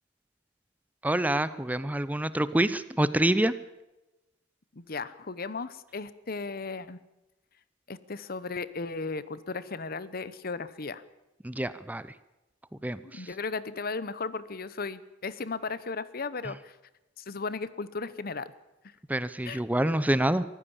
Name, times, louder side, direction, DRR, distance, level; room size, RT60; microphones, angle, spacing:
voice 1, 1.0-3.5 11.4-12.0 12.8-13.0 19.1-20.4, right 1 dB, 10° right, 15 dB, 0.6 m, -26 dB
voice 2, 4.7-7.0 7.9-11.0 13.0-16.8 17.2-18.5 19.4-19.6, left 4 dB, 50° left, 16 dB, 1.0 m, -36 dB
23.5 x 15.0 x 7.2 m, 0.99 s
head